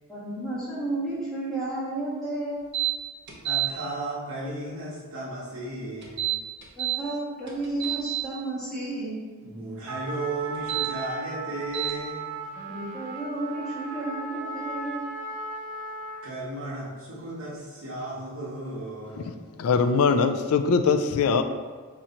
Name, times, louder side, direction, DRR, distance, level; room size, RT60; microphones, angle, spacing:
voice 1, 0.1-2.6 6.8-9.2 12.5-15.1, right 2 dB, ahead, -10 dB, 1.4 m, -32 dB
sound 1, 2.7-2.9 3.3-3.7 6.0-7.0 7.5-8.2 10.5-10.9 11.7-11.9, right 14 dB, 50° right, 0.7 m, -27 dB
voice 2, 3.4-6.3 9.4-12.5 16.2-19.4, right 2 dB, 65° right, -7 dB, 1.0 m, -35 dB
Trumpet, 9.9-16.4, right 2 dB, 85° right, 0.6 m, -36 dB
voice 3, 19.6-21.4, left 5 dB, 75° left, 8 dB, 0.3 m, -22 dB
3.7 x 3.0 x 4.2 m, 1.5 s
head